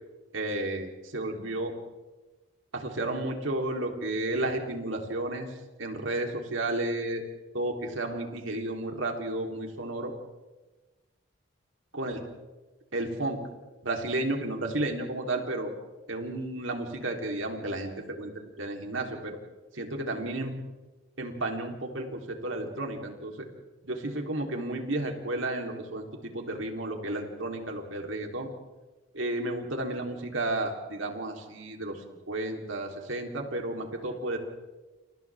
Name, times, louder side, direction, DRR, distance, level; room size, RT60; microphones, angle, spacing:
voice 1, 0.3-1.7 2.7-7.2 7.5-10.1 11.9-12.2 12.9-13.4 13.8-15.7 16.1-18.3 18.6-19.4 19.7-20.5 21.2-23.5 23.8-28.5 29.1-34.4, right 2 dB, 75° right, 2 dB, 3.8 m, -32 dB
29.5 x 29.0 x 3.7 m, 1.2 s
head